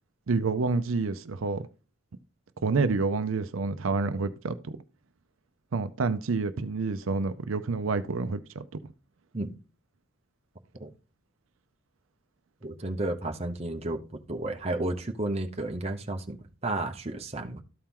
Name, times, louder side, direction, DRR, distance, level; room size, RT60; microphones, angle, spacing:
voice 1, 0.3-1.7 2.6-4.8 5.7-8.8, right 4 dB, 85° right, 0.6 m, -28 dB
voice 2, 12.6-14.0 14.3-16.4 16.6-17.6, right 2 dB, 30° right, 0.8 m, -32 dB
13.0 x 4.4 x 3.7 m
head